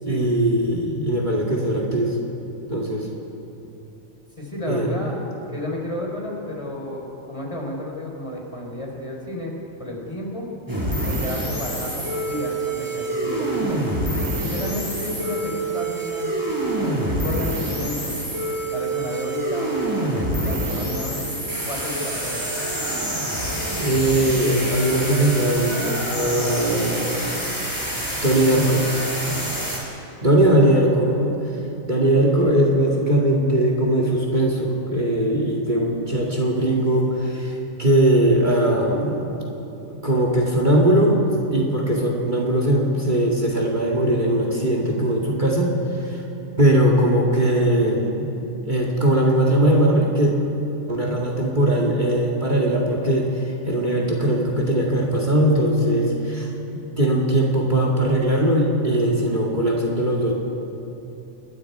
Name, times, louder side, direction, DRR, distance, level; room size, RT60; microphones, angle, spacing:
voice 1, 0.0-2.2 2.7-3.1 4.6-4.9 23.8-27.4 28.2-28.9 29.2-29.4 30.2-31.3 31.9-39.3 39.9-41.2 41.5-46.2 46.6-48.3 48.6-50.3 50.9-56.5 57.0-60.3, right 1 dB, 35° right, 0 dB, 2.3 m, -20 dB
voice 2, 4.4-5.2 5.5-9.5 9.8-10.4 11.0-13.8 14.4-16.3 16.8-18.2 18.7-21.4 21.7-22.5 30.4-30.7, left 1 dB, 25° left, -1 dB, 4.2 m, -32 dB
sound 1, 10.7-29.8, right 1 dB, 15° right, 4.7 m, -26 dB
29.5 x 20.5 x 4.8 m, 2.9 s
omnidirectional pair, 1.4 m